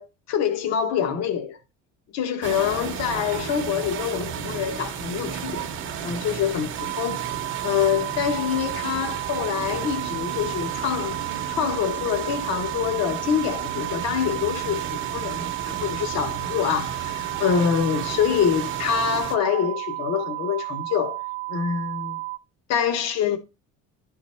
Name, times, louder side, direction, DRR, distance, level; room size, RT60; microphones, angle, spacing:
voice 1, 0.0-1.6 2.1-5.7 6.0-7.3 7.6-11.2 11.5-21.2 21.5-22.2 22.7-23.4, left 8 dB, 55° left, 1.2 m, -25 dB
sound 1, 2.4-19.4, right 7 dB, 40° right, 0.8 m, -33 dB
sound 2, 6.8-22.4, right 22 dB, 75° right, 0.5 m, -32 dB
11.5 x 3.9 x 4.3 m
cardioid pair, 175°, 32 cm